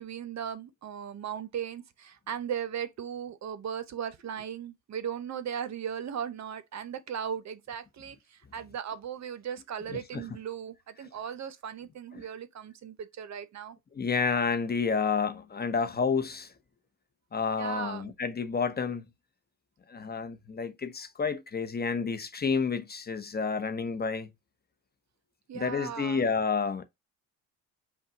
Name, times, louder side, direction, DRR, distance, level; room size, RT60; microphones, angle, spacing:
voice 1, 0.0-13.8 17.6-18.1 25.5-26.2, right 8 dB, 45° right, 0.7 m, -37 dB
voice 2, 9.9-10.2 12.1-12.3 13.9-16.5 17.3-19.0 19.9-24.3 25.5-26.8, left 5 dB, 25° left, 0.8 m, -30 dB
5.4 x 2.3 x 3.9 m
cardioid pair, 90°, 37 cm